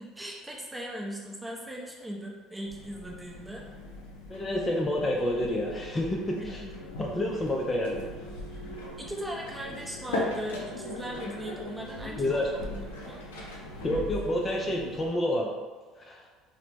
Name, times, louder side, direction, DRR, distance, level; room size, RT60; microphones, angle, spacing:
voice 1, 0.0-3.7 6.4-6.5 9.0-13.2, equal, 10° right, -2 dB, 0.7 m, -39 dB
sound 1, 2.6-15.1, left 1 dB, 85° left, 0.6 m, -39 dB
voice 2, 4.3-6.6 7.0-8.0 12.2-12.5 13.8-15.5 16.0-16.3, left 1 dB, 25° left, -1 dB, 0.4 m, -29 dB
2.8 x 2.1 x 3.3 m, 1.4 s
hypercardioid pair, 65°, 0 cm